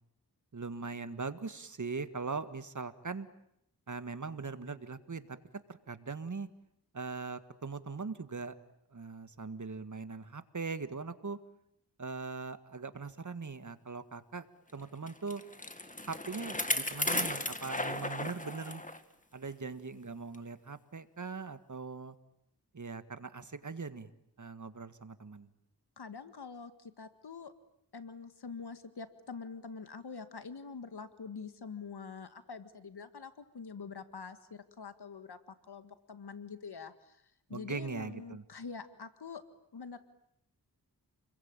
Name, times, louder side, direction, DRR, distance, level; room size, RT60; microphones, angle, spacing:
voice 1, 0.5-3.3 3.9-5.4 5.7-6.5 6.9-8.5 8.9-11.4 12.0-14.5 14.7-15.4 16.1-18.8 19.3-22.2 22.7-24.1 24.4-25.5 37.5-38.4, right 4 dB, 45° right, 11 dB, 1.8 m, -40 dB
Bicycle, 15.1-19.0 19.4-19.5 20.3-20.4, left 1 dB, 20° left, 2.2 m, -35 dB
voice 2, 26.0-27.5 27.9-37.2 37.5-39.4 39.7-40.0, left 5 dB, 75° left, 10 dB, 1.9 m, -45 dB
30.0 x 22.0 x 8.9 m, 0.76 s
wide cardioid pair, 65°, 40 cm